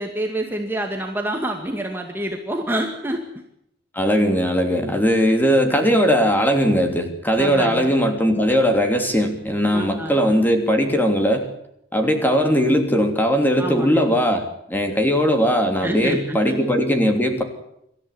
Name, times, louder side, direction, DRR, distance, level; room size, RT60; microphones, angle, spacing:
voice 1, 0.0-3.2 4.8-4.9 7.4-8.0 9.7-10.2 13.6-14.0 15.8-16.6, right 1 dB, 10° right, 2 dB, 2.0 m, -27 dB
voice 2, 3.9-11.4 11.9-17.4, equal, 10° left, 4 dB, 3.1 m, -19 dB
25.0 x 14.0 x 10.0 m, 0.77 s
head